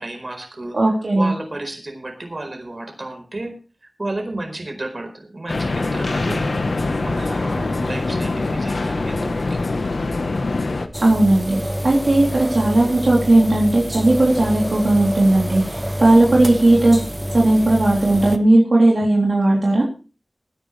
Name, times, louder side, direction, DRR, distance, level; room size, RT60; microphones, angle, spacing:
voice 1, 0.0-0.8 1.1-3.5 4.0-6.5 7.0-9.6, right 2 dB, 55° right, 5 dB, 4.4 m, -32 dB
voice 2, 0.7-1.3 11.0-11.6 11.8-17.0 17.3-19.9, right 2 dB, 80° right, -2 dB, 3.4 m, -16 dB
sound 1, 5.5-10.9, left 3 dB, 85° left, 1.1 m, -23 dB
sound 2, 10.9-18.4, equal, 15° right, 1.3 m, -27 dB
21.0 x 10.0 x 3.3 m, 0.35 s
wide cardioid pair, 40°, 0 cm